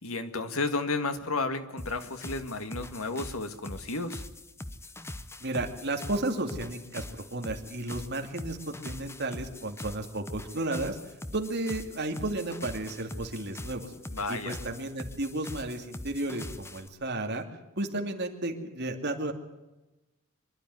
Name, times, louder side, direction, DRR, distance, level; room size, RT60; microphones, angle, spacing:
voice 1, 0.0-4.2 14.1-14.6, left 3 dB, 80° left, 8 dB, 2.0 m, -32 dB
sound 1, 1.8-16.9, left 1 dB, 10° left, 0.9 m, -42 dB
voice 2, 5.4-11.0 11.3-13.9 14.3-17.4 17.8-19.3, right 2 dB, 55° right, 4 dB, 2.6 m, -33 dB
24.5 x 12.0 x 9.4 m, 1.0 s
head